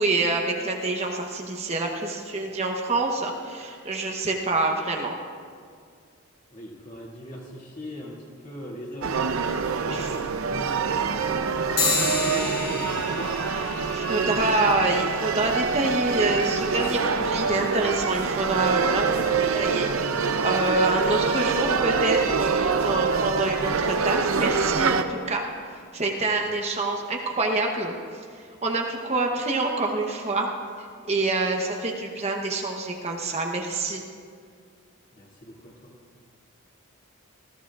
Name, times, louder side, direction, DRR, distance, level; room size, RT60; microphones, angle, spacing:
voice 1, 0.0-5.2 9.8-10.1 13.8-25.4 25.9-27.9 28.3-30.5 31.1-34.0, right 2 dB, 30° right, 1 dB, 0.9 m, -26 dB
voice 2, 6.5-11.6 12.0-13.3 14.0-14.6 26.4-26.5 35.1-35.9, equal, 40° left, -3 dB, 2.3 m, -41 dB
sound 1, 9.0-25.0, right 5 dB, 80° right, 0.6 m, -25 dB
sound 2, 11.8-21.6, left 4 dB, 60° left, 3.3 m, -35 dB
20.0 x 14.5 x 2.4 m, 2.2 s
head